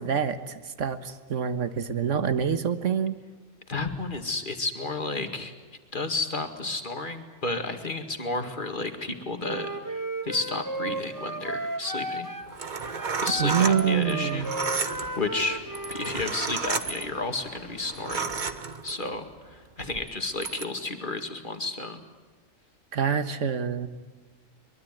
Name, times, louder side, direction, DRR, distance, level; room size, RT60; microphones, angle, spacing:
voice 1, 0.0-3.1 13.4-14.5 22.9-23.9, right 7 dB, 70° right, 11 dB, 1.7 m, -26 dB
voice 2, 3.7-5.5 5.9-12.3 13.2-14.5 14.8-15.6 15.9-18.3 18.8-22.0, left 3 dB, 40° left, 7 dB, 2.3 m, -32 dB
Wind instrument woodwind instrument, 9.4-12.5 12.8-16.2, right 2 dB, 15° right, 1.6 m, -34 dB
sound 1, 12.4-19.2 19.8-20.6, right 5 dB, 40° right, 1.2 m, -33 dB
sound 2, 13.1-18.2, left 3 dB, 70° left, 2.2 m, -47 dB
23.5 x 22.5 x 9.2 m, 1.3 s
omnidirectional pair, 1.3 m